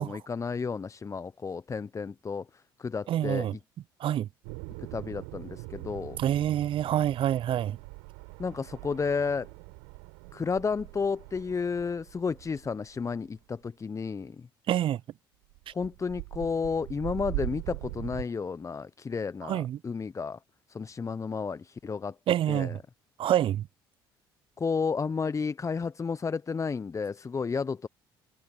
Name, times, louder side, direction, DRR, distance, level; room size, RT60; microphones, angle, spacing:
voice 1, 0.0-3.5 4.8-6.2 8.4-9.5 10.3-14.5 15.7-20.4 20.7-22.2 22.5-22.8 24.6-27.9, left 5 dB, 25° left, 0.9 m, -32 dB
voice 2, 3.1-3.5 4.0-4.3 6.2-7.8 14.7-15.0 19.4-19.8 22.3-22.8 23.2-23.7, right 11 dB, 45° right, 0.5 m, -27 dB
sound 1, 4.4-13.3 15.5-18.2, right 37 dB, 70° right, 4.5 m, -41 dB
hypercardioid pair, 55°, 12 cm